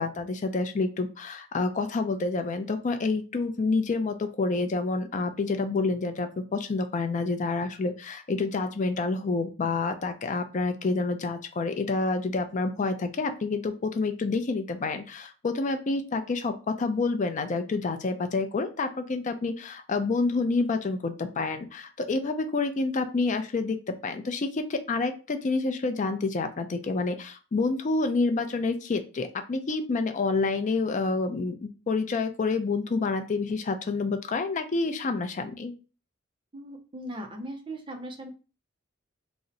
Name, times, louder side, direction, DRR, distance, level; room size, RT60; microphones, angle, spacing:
voice 1, 0.0-35.7, left 3 dB, 40° left, 7 dB, 0.4 m, -28 dB
voice 2, 36.5-38.3, right 1 dB, 25° right, 3 dB, 0.5 m, -38 dB
2.7 x 2.1 x 3.8 m, 0.34 s
head